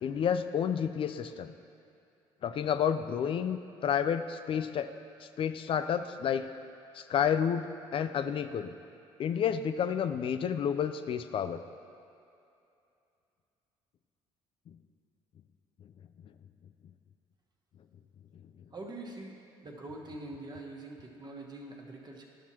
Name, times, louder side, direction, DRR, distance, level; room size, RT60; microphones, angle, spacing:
voice 1, 0.0-1.5 2.4-4.9 5.4-6.5 6.9-7.7 7.9-8.7 9.2-11.6, left 8 dB, 50° left, 10 dB, 0.4 m, -30 dB
voice 2, 18.7-19.3 19.6-22.3, right 2 dB, 35° right, 0 dB, 1.2 m, -44 dB
11.5 x 6.0 x 2.9 m, 2.6 s
supercardioid pair, 65°, 12 cm